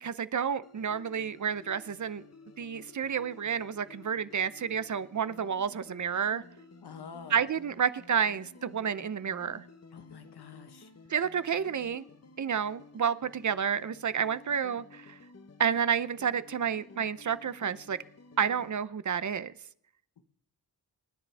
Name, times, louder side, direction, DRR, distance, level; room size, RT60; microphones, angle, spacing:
voice 1, 0.0-2.2 2.6-6.4 7.3-9.6 11.1-12.0 12.4-15.2 15.6-18.0 18.4-19.5, right 7 dB, 50° right, 15 dB, 0.7 m, -30 dB
sound 1, 0.6-18.7, left 3 dB, 40° left, 1.2 m, -54 dB
voice 2, 6.8-7.4 9.9-10.9 20.2-20.3, left 6 dB, 85° left, 8 dB, 1.3 m, -47 dB
27.5 x 10.0 x 3.5 m, 0.67 s
wide cardioid pair, 90°, 39 cm